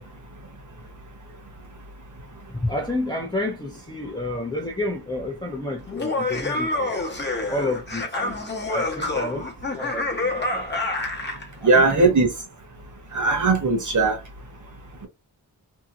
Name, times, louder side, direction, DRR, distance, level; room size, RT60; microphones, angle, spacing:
voice 1, 2.5-6.9 7.5-8.4 8.6-10.7 11.6-12.3, left 1 dB, 10° left, 0.7 m, -30 dB
Laughter, 5.9-11.5, left 2 dB, 25° left, 1.0 m, -27 dB
voice 2, 11.6-12.3 13.1-14.2, right 3 dB, 45° right, 1.1 m, -18 dB
2.8 x 2.5 x 2.5 m
wide cardioid pair, 70°, 40 cm